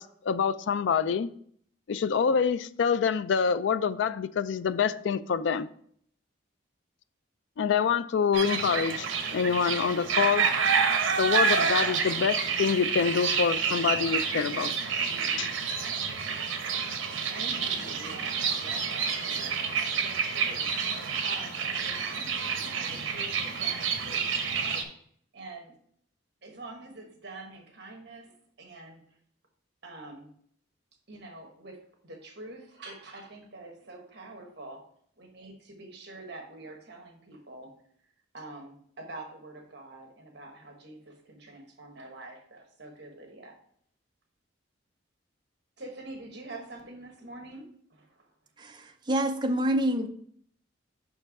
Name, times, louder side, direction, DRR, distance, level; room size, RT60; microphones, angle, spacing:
voice 1, 0.0-1.3 1.9-5.7 7.6-10.5 11.2-14.7 15.4-15.8, left 6 dB, 65° left, 0.3 m, -26 dB
sound 1, 8.3-24.8, right 6 dB, 75° right, 0.8 m, -29 dB
voice 2, 17.3-24.9 25.3-25.7 26.4-29.2 29.8-30.3 31.1-34.8 35.2-37.7 38.3-43.5 45.8-48.3, right 2 dB, 55° right, 1.3 m, -46 dB
voice 3, 48.6-50.1, right 1 dB, 20° right, 0.5 m, -27 dB
5.7 x 4.5 x 4.7 m
head